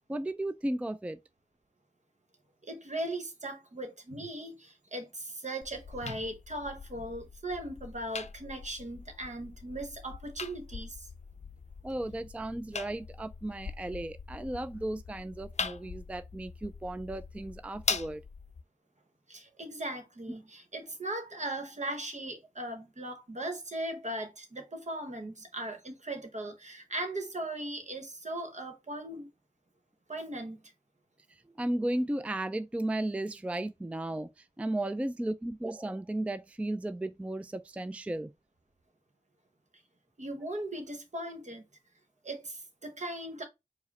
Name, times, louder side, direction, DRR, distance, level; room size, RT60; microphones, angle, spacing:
voice 1, 0.1-1.2 11.8-18.2 31.6-38.3, right 1 dB, 10° right, 0.3 m, -35 dB
voice 2, 2.6-11.1 19.3-29.3 30.1-30.6 40.2-41.6 42.2-43.4, right 1 dB, 65° right, 1.1 m, -38 dB
sound 1, 5.6-18.6, left 5 dB, 60° left, 0.4 m, -41 dB
4.7 x 2.1 x 4.1 m
wide cardioid pair, 45°, 13 cm